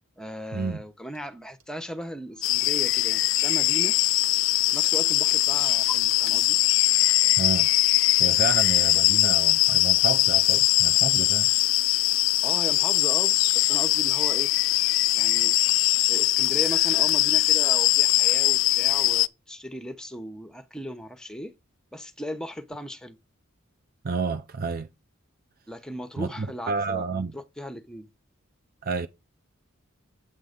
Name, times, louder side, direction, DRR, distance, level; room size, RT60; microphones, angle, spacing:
voice 1, 0.2-3.9 4.7-6.6 12.4-14.5 15.2-15.6 16.1-21.5 21.9-23.2 25.7-28.1, equal, 5° left, 0.9 m, -37 dB
Clock, 1.1-1.2 1.6-3.1 3.3-3.4 3.7-4.3 4.7-6.3, right 2 dB, 85° right, 1.4 m, -46 dB
sound 1, 2.4-19.3, left 17 dB, 65° left, 0.4 m, -21 dB
voice 2, 7.4-7.7 8.2-11.5 24.0-24.9 26.2-27.3 28.8-29.1, right 4 dB, 45° right, 0.6 m, -30 dB
8.6 x 3.9 x 6.6 m
head